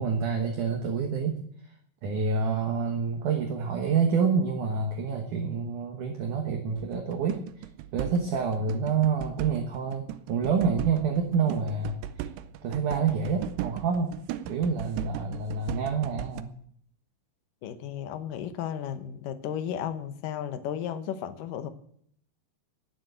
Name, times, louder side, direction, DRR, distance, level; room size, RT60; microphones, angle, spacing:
voice 1, 0.0-1.4 2.0-7.7 7.9-12.0 12.6-14.2 14.5-16.5, right 5 dB, 60° right, 4 dB, 2.3 m, -27 dB
sound 1, 6.8-16.4, right 12 dB, 80° right, 2.7 m, -38 dB
voice 2, 17.6-21.7, left 9 dB, 70° left, 10 dB, 2.3 m, -34 dB
19.0 x 7.4 x 8.1 m, 0.66 s
omnidirectional pair, 4.8 m